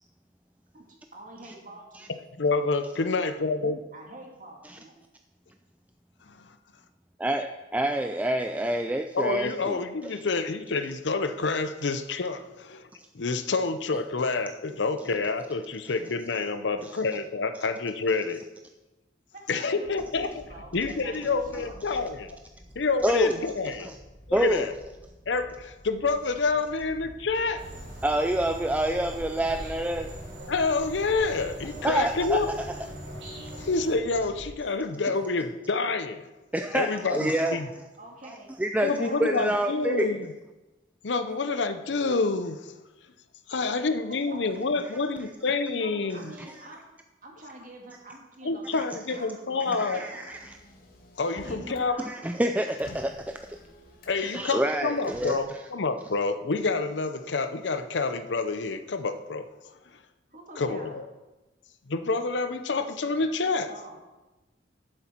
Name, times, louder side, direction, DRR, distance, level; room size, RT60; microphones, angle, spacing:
voice 1, 0.7-2.2 2.6-2.7 3.9-5.0 19.3-19.9 20.1-20.7 21.0-21.8 36.8-37.6 38.0-40.2 43.7-43.8 45.7-46.8 47.2-50.3 51.3-52.4 60.3-61.0 63.7-64.0, right 1 dB, 45° right, 1 dB, 2.0 m, -47 dB
voice 2, 2.4-3.8 6.3-6.5 9.1-12.9 13.1-18.4 19.5-20.4 20.7-22.4 22.8-23.9 24.3-24.7 25.3-27.7 30.5-32.5 33.6-36.2 36.7-37.7 38.8-40.3 41.0-42.7 43.5-46.3 48.4-50.0 51.2-52.0 54.1-59.5 60.6-61.1 61.9-63.7, left 3 dB, 90° left, 10 dB, 0.7 m, -28 dB
voice 3, 7.2-10.1 16.8-16.9 21.9-22.0 23.0-23.4 23.8-24.0 24.3-24.7 28.0-30.1 31.8-32.7 36.5-37.6 38.6-40.1 46.4-46.7 48.8-48.9 49.7-50.6 52.1-53.6 54.2-55.6, right 1 dB, 10° right, 6 dB, 0.3 m, -28 dB
sound 1, 19.8-34.5, equal, 10° left, 1.7 m, -49 dB
sound 2, 27.6-34.0, right 1 dB, 85° right, 2.8 m, -41 dB
Motor vehicle (road), 50.3-51.9 52.2-54.4 55.0-55.4, left 1 dB, 55° left, 1.6 m, -49 dB
11.0 x 7.8 x 4.5 m, 1.1 s
head